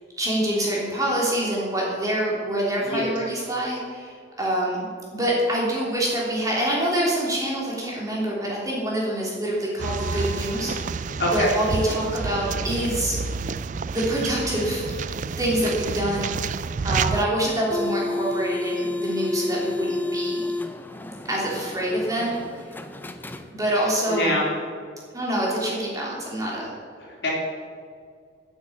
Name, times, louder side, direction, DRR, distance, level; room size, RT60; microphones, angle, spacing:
voice 1, 0.2-4.9 5.1-10.7 11.3-13.2 13.9-16.3 16.8-20.5 21.3-22.4 23.5-24.4 25.1-26.7, right 1 dB, 20° right, -5 dB, 3.2 m, -26 dB
sound 1, 9.8-17.3, right 5 dB, 40° right, 0.3 m, -29 dB
sound 2, 9.8-13.7, right 1 dB, 65° right, 3.8 m, -45 dB
voice 2, 11.2-11.5 23.8-24.4 27.0-27.3, left 1 dB, 65° left, -3 dB, 3.6 m, -25 dB
sound 3, 17.5-23.9, left 2 dB, 10° left, 0.6 m, -31 dB
8.9 x 8.6 x 8.6 m, 2.1 s
head